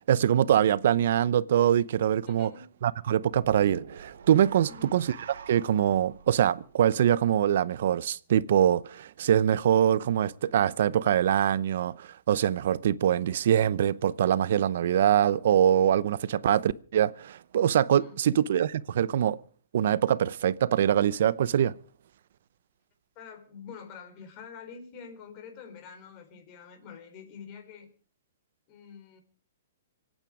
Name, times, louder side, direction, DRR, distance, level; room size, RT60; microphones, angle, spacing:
voice 1, 0.1-2.5 2.8-5.1 5.5-19.4 19.7-21.7, right 10 dB, 60° right, 0.7 m, -24 dB
voice 2, 2.3-2.6 4.7-4.9 18.0-18.2 23.2-27.9 28.7-29.2, left 6 dB, 30° left, 4.1 m, -46 dB
sound 1, 3.3-7.6, right 6 dB, 80° right, 1.8 m, -47 dB
25.0 x 9.0 x 5.0 m
hypercardioid pair, 155°, 0 cm